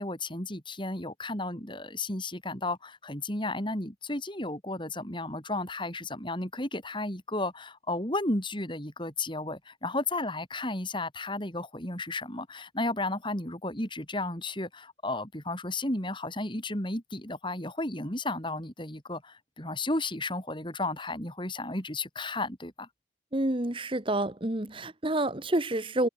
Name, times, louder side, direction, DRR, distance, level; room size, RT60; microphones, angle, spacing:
voice 1, 0.0-22.9, left 2 dB, 25° left, 6.4 m, -33 dB
voice 2, 23.3-26.1, right 1 dB, 30° right, 1.4 m, -28 dB
head